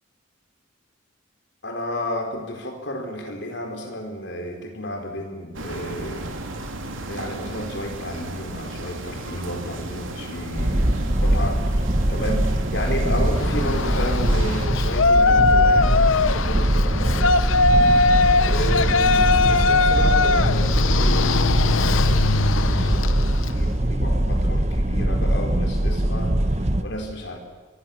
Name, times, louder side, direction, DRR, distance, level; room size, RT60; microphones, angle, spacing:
voice 1, 1.6-6.3 7.0-10.9 11.2-11.6 12.1-17.5 18.4-27.4, left 1 dB, 60° left, 3 dB, 4.8 m, -32 dB
sound 1, 5.5-14.7, right 2 dB, 75° right, 3.0 m, -34 dB
sound 2, 10.6-26.8, right 1 dB, 35° right, 1.2 m, -22 dB
Yell, 13.4-23.6, left 3 dB, 80° left, 0.9 m, -20 dB
24.5 x 23.0 x 7.4 m, 1.3 s
head